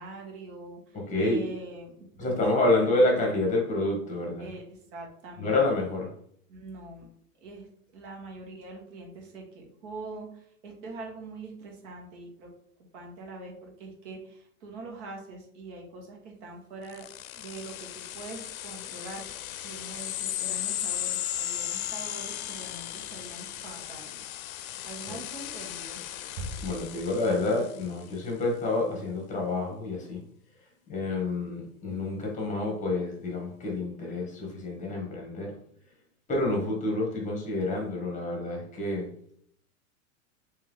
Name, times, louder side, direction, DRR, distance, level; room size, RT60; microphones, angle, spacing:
voice 1, 0.0-2.4 2.8-3.4 4.4-5.7 6.5-7.1 7.4-7.7 7.9-12.5 12.9-17.1 17.3-24.2 24.8-26.0, right 3 dB, 60° right, 0 dB, 1.6 m, -43 dB
voice 2, 0.9-1.4 2.2-4.5 5.4-6.1 25.1-25.2 26.6-30.2 30.9-35.5 36.3-39.1, left 2 dB, 20° left, -1 dB, 1.4 m, -28 dB
sound 1, 16.9-28.0, left 12 dB, 80° left, 0.5 m, -36 dB
sound 2, 26.4-27.8, right 1 dB, 40° right, 0.8 m, -41 dB
3.5 x 3.1 x 3.6 m, 0.65 s
hypercardioid pair, 130°, 41 cm